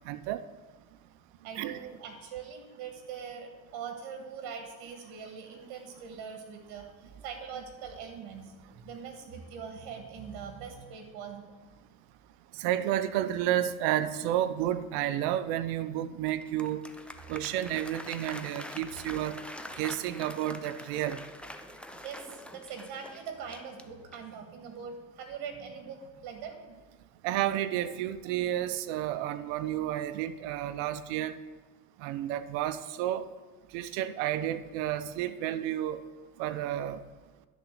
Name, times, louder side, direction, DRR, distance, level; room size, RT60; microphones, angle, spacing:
voice 1, 0.1-0.4 1.6-1.8 12.5-16.8 17.3-19.4 19.8-21.2 27.2-31.4 32.0-33.3 33.7-36.0 36.4-37.0, right 12 dB, 85° right, 12 dB, 0.6 m, -31 dB
voice 2, 1.4-11.5 22.0-26.5, right 6 dB, 70° right, 4 dB, 1.5 m, -42 dB
Applause, 16.3-24.4, left 1 dB, 5° left, 0.7 m, -45 dB
11.0 x 4.0 x 7.4 m, 1.3 s
supercardioid pair, 75°, 39 cm